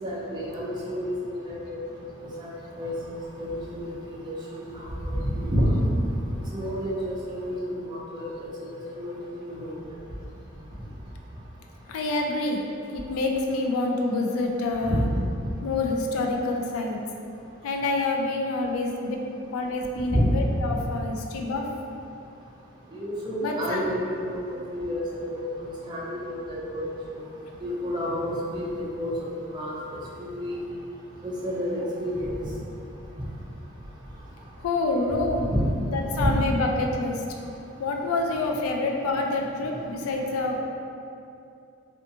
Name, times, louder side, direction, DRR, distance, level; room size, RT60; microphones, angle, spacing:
voice 1, 0.0-1.8 2.4-2.5 2.8-4.3 4.6-5.9 6.5-8.3 8.9-9.2 9.4-9.8 14.9-15.2 20.1-20.3 22.9-27.2 27.6-29.1 29.5-29.8 30.2-30.6 31.2-32.4 35.5-35.6 36.2-36.4, equal, 20° right, -6 dB, 0.4 m, -29 dB
voice 2, 11.9-12.6 12.9-15.1 15.6-17.0 17.6-19.2 19.5-21.7 23.4-23.8 34.6-35.5 35.9-37.2 37.8-40.6, left 2 dB, 80° left, 2 dB, 0.3 m, -27 dB
2.5 x 2.3 x 2.6 m, 2.6 s
head